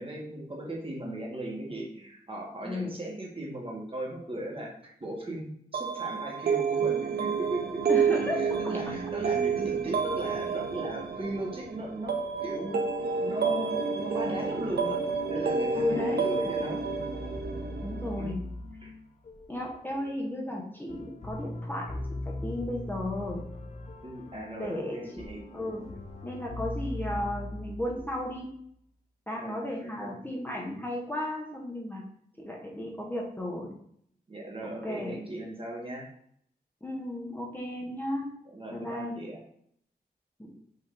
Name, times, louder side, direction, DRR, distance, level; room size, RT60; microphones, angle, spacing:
voice 1, 0.0-5.5 5.7-7.8 8.3-12.8 13.2-15.0 15.3-16.8 18.2-18.4 18.8-18.9 24.0-25.4 29.3-30.2 34.3-36.1 38.5-39.4, right 1 dB, 35° right, -2 dB, 1.2 m, -37 dB
voice 2, 2.7-3.0 7.9-8.7 15.7-16.3 17.8-18.5 19.5-22.0 22.2-23.5 24.6-25.0 25.5-25.9 26.2-28.5 29.3-32.1 32.4-33.8 34.8-35.2 36.8-38.3 38.7-39.2 40.4-40.5, left 1 dB, 10° left, -2 dB, 0.8 m, -34 dB
sound 1, 5.7-18.3, right 5 dB, 75° right, 0.5 m, -30 dB
sound 2, 16.5-28.6, left 1 dB, 45° left, 0.6 m, -40 dB
5.6 x 2.7 x 3.6 m, 0.66 s
wide cardioid pair, 120°, 17 cm